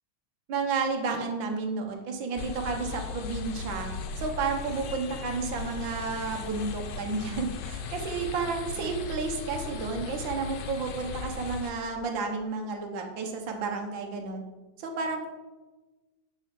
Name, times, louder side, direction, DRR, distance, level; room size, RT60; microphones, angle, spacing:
voice 1, 0.5-3.9 4.2-14.4 14.8-15.3, right 4 dB, 80° right, 2 dB, 1.8 m, -31 dB
sound 1, 2.4-11.7, left 5 dB, 75° left, 1.4 m, -37 dB
9.5 x 4.2 x 5.8 m, 1.2 s
omnidirectional pair, 2.0 m